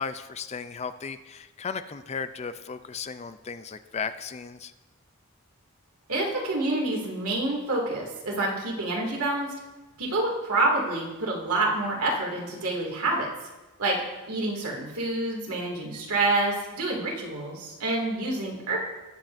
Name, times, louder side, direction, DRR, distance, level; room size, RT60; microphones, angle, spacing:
voice 1, 0.0-4.7, left 5 dB, 30° left, 11 dB, 0.4 m, -35 dB
voice 2, 6.1-9.5 10.0-13.3 13.8-14.0 14.3-18.8, right 2 dB, 85° right, -1 dB, 2.3 m, -27 dB
20.0 x 7.2 x 2.6 m, 1.1 s
head